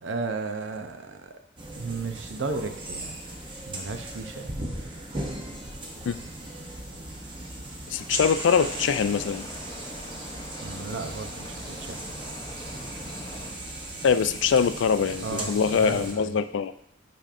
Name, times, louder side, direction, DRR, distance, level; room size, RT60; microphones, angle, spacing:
voice 1, 0.0-1.3 1.7-3.2 3.7-4.5 10.6-12.0 15.2-16.4, right 4 dB, 75° right, 7 dB, 0.6 m, -34 dB
sound 1, 1.6-16.1, right 1 dB, 25° right, 0.8 m, -37 dB
voice 2, 7.9-9.5 14.0-16.7, left 6 dB, 80° left, 13 dB, 0.3 m, -23 dB
sound 2, 8.5-13.5, left 1 dB, 25° left, 0.7 m, -44 dB
8.8 x 5.2 x 2.5 m, 0.71 s
head